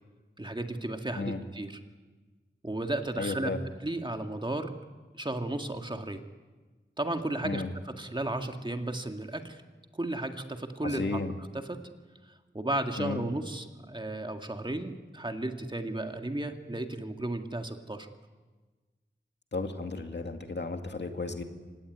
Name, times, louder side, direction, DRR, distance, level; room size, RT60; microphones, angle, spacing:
voice 1, 0.4-1.8 2.6-3.5 3.8-4.7 5.1-6.2 7.0-7.6 8.0-9.6 9.9-11.2 11.5-11.8 12.2-18.1, right 1 dB, 25° right, 5 dB, 1.9 m, -34 dB
voice 2, 3.2-3.6 7.4-7.7 10.8-11.3 13.0-13.2 19.5-21.4, left 3 dB, 65° left, 5 dB, 2.2 m, -33 dB
25.5 x 19.0 x 9.8 m, 1.3 s
wide cardioid pair, 80°, 19 cm